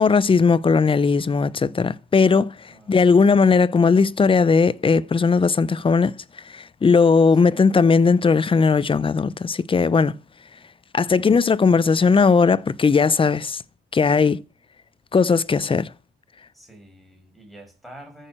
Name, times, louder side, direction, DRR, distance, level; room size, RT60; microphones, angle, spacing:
voice 1, 0.0-6.2 6.5-10.1 10.9-13.6 13.9-14.4 15.1-15.9, left 5 dB, 25° left, 0.7 m, -18 dB
voice 2, 2.7-3.1 7.3-7.7 11.0-11.3 16.5-18.3, right 1 dB, ahead, 6.2 m, -47 dB
14.0 x 6.6 x 7.7 m
cardioid pair, 90°, 20 cm